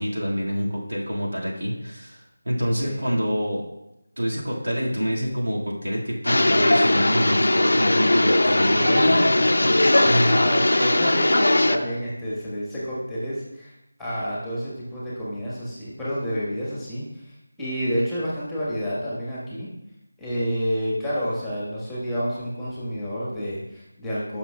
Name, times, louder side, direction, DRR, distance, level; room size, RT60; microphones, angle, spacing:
voice 1, 0.0-3.6 4.2-9.2 10.1-10.3, equal, 85° right, -3 dB, 1.9 m, -26 dB
voice 2, 2.8-3.1 8.7-13.7 14.0-19.7 20.2-24.4, equal, 5° left, -8 dB, 1.3 m, -29 dB
sound 1, 6.3-11.8, left 1 dB, 80° left, 0.5 m, -19 dB
12.5 x 5.7 x 2.3 m, 0.89 s
figure-of-eight pair, 165°, 0 cm